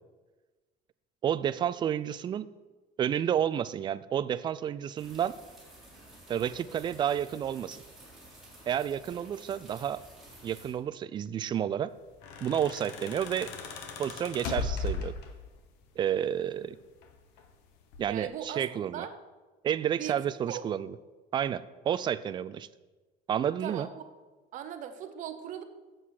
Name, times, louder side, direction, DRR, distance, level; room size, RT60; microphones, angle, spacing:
voice 1, 1.2-2.5 3.0-5.3 6.3-7.8 8.7-10.0 10.4-11.9 12.4-13.5 14.0-15.1 16.0-16.8 18.0-19.0 19.6-20.9 21.3-22.7 23.3-23.9, right 9 dB, 25° right, 15 dB, 0.3 m, -30 dB
sound 1, 5.0-10.7, right 1 dB, ahead, 3.7 m, -52 dB
sound 2, 12.0-15.6 16.8-17.5 17.9-18.2, left 4 dB, 75° left, 1.3 m, -37 dB
voice 2, 18.1-19.1 20.0-20.2 20.5-20.7 23.6-24.1 24.5-25.6, right 9 dB, 45° right, 8 dB, 0.8 m, -39 dB
8.3 x 7.6 x 6.4 m, 1.2 s
cardioid pair, 155°, 17 cm